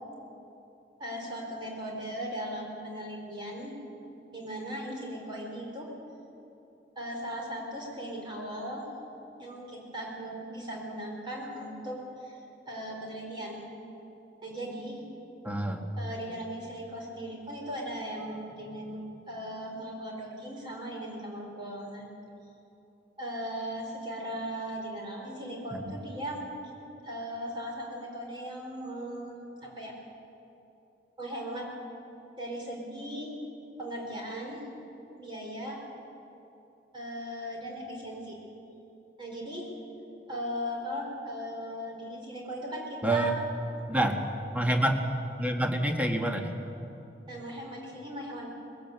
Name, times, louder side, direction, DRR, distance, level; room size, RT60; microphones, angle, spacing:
voice 1, 1.0-3.8 4.3-5.9 6.9-8.9 9.4-12.4 12.7-13.7 14.4-15.0 16.0-19.0 19.3-22.1 23.2-26.4 27.0-29.3 29.6-29.9 31.2-31.7 32.4-33.3 33.8-34.6 35.2-35.8 36.9-38.4 39.2-39.7 40.3-43.3 47.3-48.5, equal, 25° right, -2 dB, 4.5 m, -38 dB
voice 2, 15.4-15.8 25.7-26.0 43.0-43.3 43.9-44.2 44.5-45.0 45.4-46.5, right 1 dB, 10° right, 3 dB, 1.5 m, -27 dB
20.5 x 16.5 x 8.1 m, 3.0 s
head